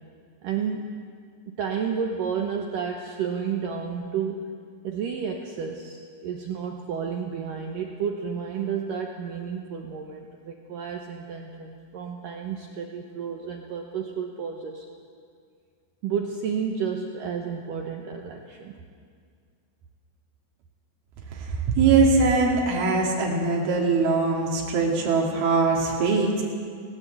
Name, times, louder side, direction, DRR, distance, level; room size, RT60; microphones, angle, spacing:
voice 1, 0.4-0.9 1.5-4.5 4.8-14.9 16.0-18.7, right 6 dB, 70° right, 2 dB, 2.1 m, -31 dB
voice 2, 21.4-26.4, right 4 dB, 90° right, -2 dB, 5.1 m, -22 dB
18.5 x 18.0 x 8.4 m, 2.1 s
omnidirectional pair, 5.3 m